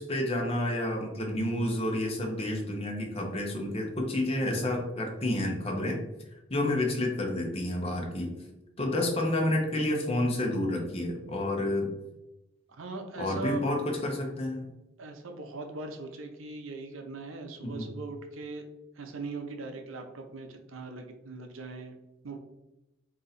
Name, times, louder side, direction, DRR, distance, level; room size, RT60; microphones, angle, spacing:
voice 1, 0.0-6.0 6.5-8.3 8.8-11.9 13.2-14.7 17.6-17.9, left 1 dB, 30° left, 1 dB, 0.8 m, -29 dB
voice 2, 12.7-13.7 15.0-18.6 19.0-22.0 22.2-22.4, right 3 dB, 80° right, 5 dB, 0.6 m, -40 dB
3.9 x 2.8 x 4.0 m, 0.94 s
head